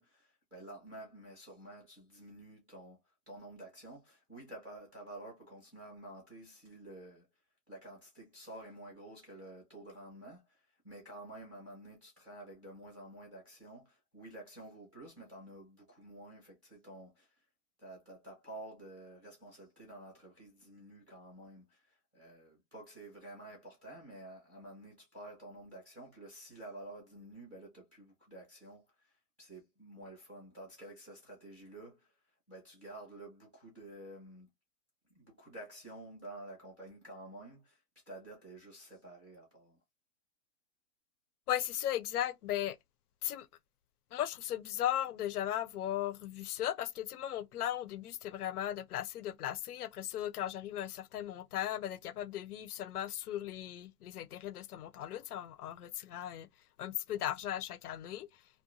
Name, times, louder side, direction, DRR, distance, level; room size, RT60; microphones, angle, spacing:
voice 1, 0.0-3.0 3.3-7.3 7.7-17.4 17.8-32.2 32.5-34.5 35.1-39.8, right 1 dB, 5° right, 0.6 m, -51 dB
voice 2, 41.5-42.8 43.2-43.5 44.1-56.5 56.8-58.3, left 12 dB, 70° left, 0.5 m, -37 dB
2.7 x 2.1 x 2.5 m
hypercardioid pair, 170°, 48 cm